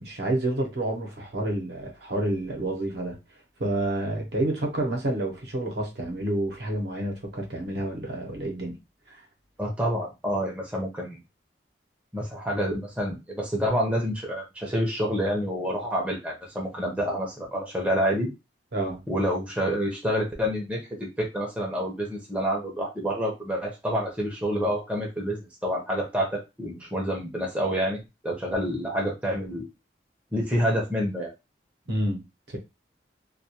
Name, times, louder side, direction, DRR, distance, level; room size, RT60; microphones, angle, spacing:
voice 1, 0.0-3.2 3.6-8.7 9.1-9.2 18.7-19.0 31.9-32.6, right 1 dB, 65° right, 0.8 m, -29 dB
voice 2, 9.6-11.2 12.1-18.3 19.1-29.7 30.3-31.3, equal, 5° right, 0.6 m, -28 dB
2.3 x 2.3 x 2.8 m
head